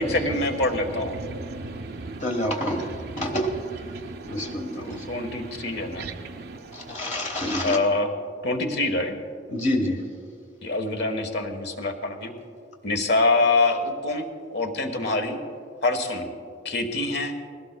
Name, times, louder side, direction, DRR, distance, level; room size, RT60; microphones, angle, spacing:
voice 1, 0.0-1.2 4.7-6.1 7.6-8.1 8.4-9.2 10.6-12.3 12.8-15.4 15.8-16.3 16.6-17.3, left 2 dB, 60° left, 1.3 m, -25 dB
voice 2, 1.1-2.2 3.9-4.6 4.9-7.0, right 3 dB, 55° right, 0.5 m, -38 dB
voice 3, 2.2-3.5 4.3-5.0 6.7-7.8 9.5-10.0, left 1 dB, 40° left, 1.2 m, -27 dB
20.5 x 16.5 x 2.2 m
head